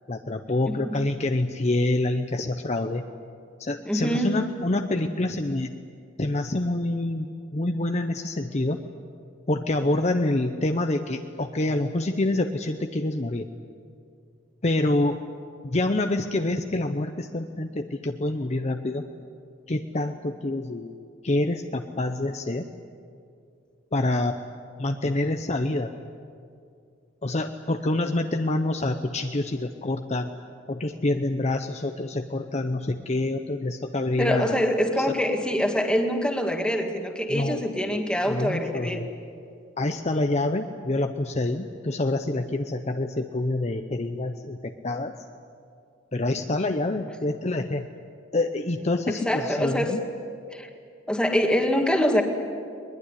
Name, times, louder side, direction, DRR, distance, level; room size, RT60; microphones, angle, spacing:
voice 1, 0.1-3.0 3.6-5.7 6.2-8.8 9.5-13.4 14.6-15.2 15.6-19.0 19.7-20.9 21.2-22.7 23.9-24.4 24.8-25.9 27.2-30.3 30.7-34.7 35.0-35.1 37.3-37.6 38.2-39.1 39.8-45.1 46.1-47.9 48.3-50.0, left 2 dB, 35° left, 6 dB, 0.8 m, -26 dB
voice 2, 0.6-1.0 3.9-4.3 34.2-39.0 49.1-49.9 50.5-50.7 51.1-52.2, equal, 5° left, 4 dB, 2.0 m, -25 dB
21.5 x 21.0 x 9.8 m, 2.4 s
head